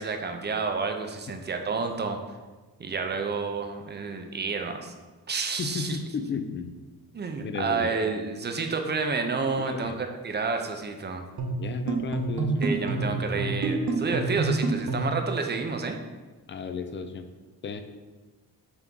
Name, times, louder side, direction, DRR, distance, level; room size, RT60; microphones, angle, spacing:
voice 1, 0.0-2.2 2.8-4.9 5.3-6.0 7.1-11.2 12.6-16.0, right 4 dB, 30° right, 5 dB, 0.5 m, -30 dB
voice 2, 5.6-6.7 7.4-7.9 9.6-10.0 11.5-13.6 16.5-17.3 17.6-17.8, left 5 dB, 30° left, 9 dB, 0.4 m, -34 dB
sound 1, 11.4-15.2, right 3 dB, 50° right, 1.0 m, -28 dB
5.9 x 3.5 x 5.3 m, 1.3 s
wide cardioid pair, 160°, 37 cm